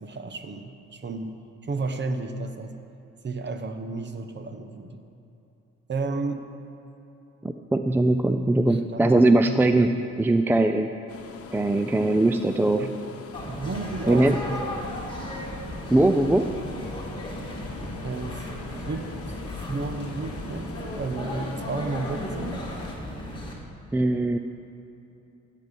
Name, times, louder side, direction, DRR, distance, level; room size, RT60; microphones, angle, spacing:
voice 1, 0.0-2.8 3.2-5.0 5.9-6.4 8.7-9.6 12.6-13.0 13.5-15.0 18.0-18.4 18.8-22.7, right 3 dB, 35° right, 8 dB, 1.0 m, -33 dB
voice 2, 7.4-10.9 11.5-12.8 14.1-14.4 15.9-16.5 23.9-24.4, right 2 dB, 5° right, 8 dB, 0.4 m, -21 dB
sound 1, 11.1-23.0, left 5 dB, 50° left, 1.0 m, -43 dB
sound 2, 13.3-23.5, left 1 dB, 15° left, 2.3 m, -35 dB
16.5 x 7.6 x 5.3 m, 2.9 s
cardioid pair, 90°, 30 cm